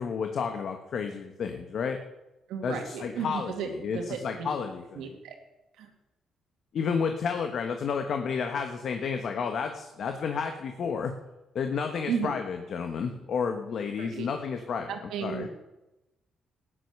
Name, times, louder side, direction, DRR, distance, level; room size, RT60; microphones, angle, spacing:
voice 1, 0.0-2.0 2.6-5.1 6.7-11.1 11.5-14.9 15.2-15.5, left 6 dB, 60° left, 5 dB, 1.3 m, -31 dB
voice 2, 2.5-4.5 4.9-5.3 5.8-5.9 12.1-12.3 14.0-14.3 14.9-15.5, right 6 dB, 85° right, 4 dB, 2.4 m, -34 dB
14.0 x 10.0 x 6.8 m, 0.97 s
cardioid pair, 90°, 0 cm